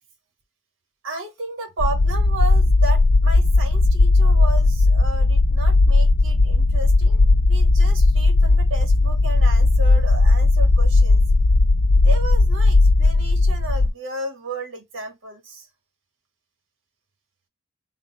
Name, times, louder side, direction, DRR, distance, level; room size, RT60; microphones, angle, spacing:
voice 1, 1.0-11.2 12.0-15.7, right 3 dB, 80° right, 1.3 m, -33 dB
sound 1, 1.8-13.9, left 2 dB, 80° left, 0.5 m, -16 dB
4.0 x 2.0 x 3.8 m
head